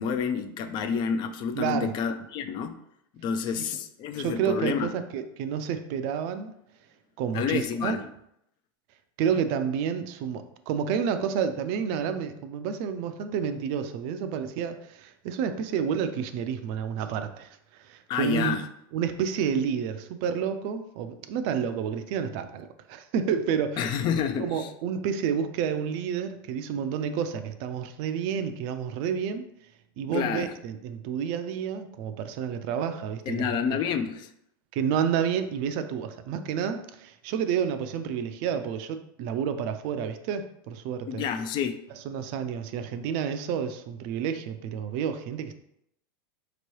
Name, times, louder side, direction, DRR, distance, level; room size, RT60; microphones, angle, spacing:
voice 1, 0.0-2.7 3.1-4.9 7.3-8.0 18.1-18.7 23.8-24.7 30.1-30.5 33.3-34.3 41.1-41.8, left 7 dB, 40° left, 8 dB, 0.4 m, -29 dB
voice 2, 1.5-1.9 3.5-3.8 4.2-6.5 7.2-8.0 9.2-18.6 18.9-24.0 24.4-29.5 30.0-33.6 34.7-41.2 41.9-45.5, right 7 dB, 50° right, 9 dB, 0.4 m, -30 dB
4.5 x 2.9 x 3.1 m, 0.76 s
supercardioid pair, 125°, 12 cm